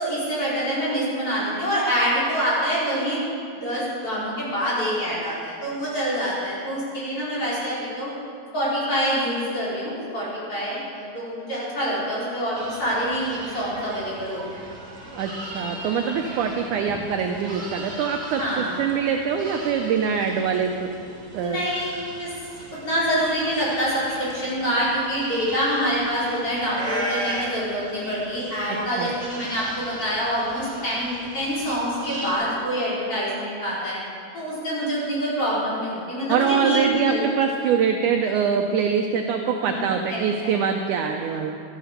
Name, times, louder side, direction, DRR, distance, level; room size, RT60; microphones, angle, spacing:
voice 1, 0.0-3.2 3.6-8.1 8.5-14.6 18.4-18.9 21.4-21.9 22.2-22.3 22.8-34.0 34.3-37.2 39.6-40.5 41.3-41.4, equal, 35° left, -8 dB, 5.2 m, -26 dB
sound 1, 12.5-32.3, right 1 dB, 25° right, 1.9 m, -37 dB
voice 2, 15.2-20.9 21.3-21.6 29.0-29.1 36.3-41.6, right 6 dB, 80° right, 4 dB, 1.8 m, -24 dB
13.0 x 11.5 x 6.7 m, 2.4 s
omnidirectional pair, 4.4 m